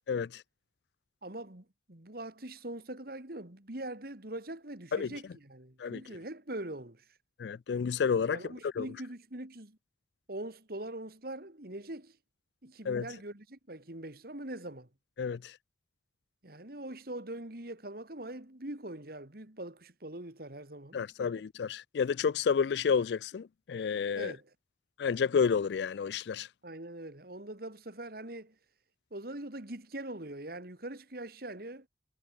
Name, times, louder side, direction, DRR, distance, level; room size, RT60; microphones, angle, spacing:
voice 1, 0.1-0.4 4.9-5.1 5.8-6.0 7.4-8.9 12.9-13.1 15.2-15.6 20.9-24.3 25.0-26.5, left 6 dB, 70° left, 0.4 m, -30 dB
voice 2, 1.2-7.0 8.3-9.8 10.3-12.2 12.6-14.9 16.4-21.3 24.2-24.5 26.6-28.5 29.1-31.9, right 1 dB, 55° right, 2.7 m, -42 dB
head